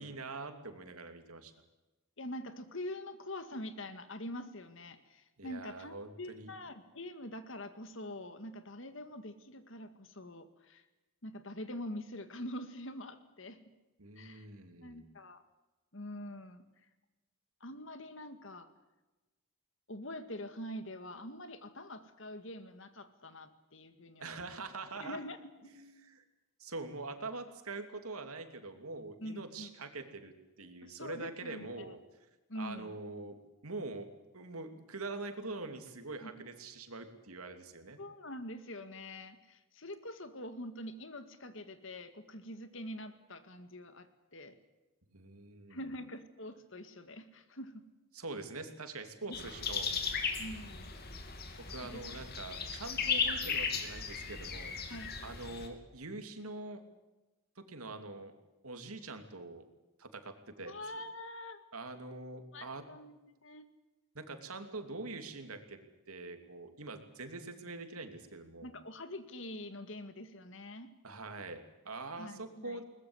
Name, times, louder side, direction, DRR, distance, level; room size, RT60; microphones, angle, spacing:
voice 1, 0.0-1.5 5.4-6.5 14.0-15.1 24.2-25.2 25.7-26.2 26.6-32.0 32.5-34.1 34.3-38.0 45.1-45.8 48.1-49.9 51.7-54.8 55.2-56.8 57.6-58.3 58.6-59.6 60.0-60.7 61.7-62.9 64.1-65.8 66.1-68.7 71.0-72.8, right 3 dB, 85° right, 7 dB, 2.9 m, -44 dB
voice 2, 2.2-10.8 11.2-13.7 14.2-14.5 14.8-15.4 15.9-16.6 17.6-18.7 19.9-24.5 25.0-25.4 29.2-29.7 30.8-31.9 32.5-33.0 36.2-36.3 38.0-44.6 45.7-47.7 49.3-49.4 50.4-50.9 51.9-52.0 54.9-55.1 60.6-61.6 62.5-63.7 68.6-70.9 72.2-72.8, left 1 dB, 60° left, 10 dB, 2.1 m, -45 dB
sound 1, 49.3-55.7, left 6 dB, 45° left, 2.9 m, -36 dB
22.0 x 20.0 x 8.1 m, 1.1 s
head